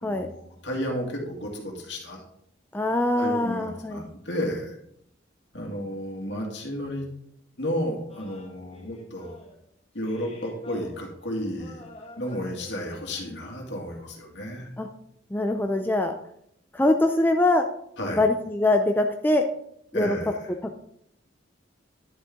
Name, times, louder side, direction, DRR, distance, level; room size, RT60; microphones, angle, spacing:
voice 1, 0.0-2.2 3.2-4.7 5.5-7.1 7.6-9.4 9.9-11.9 12.2-14.7 18.0-18.2 19.9-20.4, equal, 65° left, 0 dB, 2.2 m, -32 dB
voice 2, 2.7-4.1 14.8-14.9 15.3-16.1 16.7-17.7 18.1-19.5 19.9-20.2 20.6-20.8, left 2 dB, 10° left, 4 dB, 0.4 m, -23 dB
sound 1, 8.1-9.5 10.0-13.3, left 2 dB, 30° left, 1.8 m, -47 dB
10.5 x 6.6 x 3.7 m, 0.72 s
head